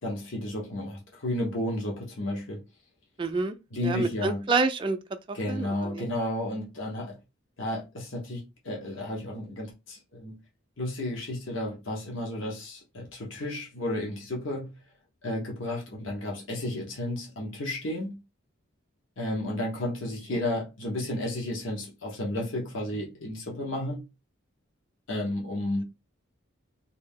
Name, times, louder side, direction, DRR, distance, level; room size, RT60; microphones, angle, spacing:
voice 1, 0.0-2.6 3.7-4.5 5.3-7.2 7.6-10.4 10.8-14.7 15.2-18.2 19.2-24.0 25.1-25.8, left 1 dB, 80° left, 1.1 m, -32 dB
voice 2, 3.2-3.6 3.8-5.0 5.3-6.1 20.3-20.4, right 3 dB, 25° right, 0.3 m, -28 dB
2.7 x 2.7 x 3.6 m
head